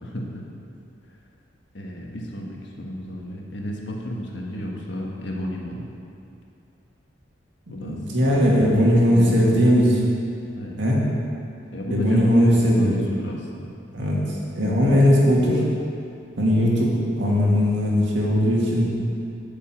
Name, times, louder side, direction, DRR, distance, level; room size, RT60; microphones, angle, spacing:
voice 1, 0.0-0.5 1.7-6.0 7.7-8.4 8.9-9.6 10.5-10.9 11.7-13.7, left 1 dB, 70° left, -1 dB, 1.4 m, -33 dB
voice 2, 7.8-10.0 10.8-11.0 11.9-13.0 13.9-15.6 16.4-19.0, equal, 75° right, -4 dB, 2.0 m, -19 dB
8.7 x 5.4 x 7.7 m, 2.5 s
head